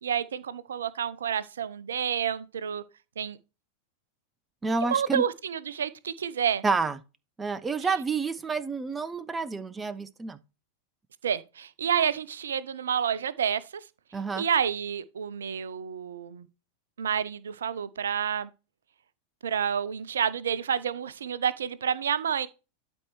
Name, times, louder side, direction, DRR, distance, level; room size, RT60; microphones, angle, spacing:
voice 1, 0.0-2.8 3.2-3.4 4.8-6.6 11.2-13.6 14.4-16.5 17.0-18.5 19.4-22.5, right 8 dB, 65° right, 0.5 m, -29 dB
voice 2, 4.6-5.2 6.6-7.0 7.4-10.4 14.1-14.5, right 4 dB, 15° right, 0.5 m, -29 dB
11.5 x 4.3 x 3.1 m
figure-of-eight pair, 90°, 0 cm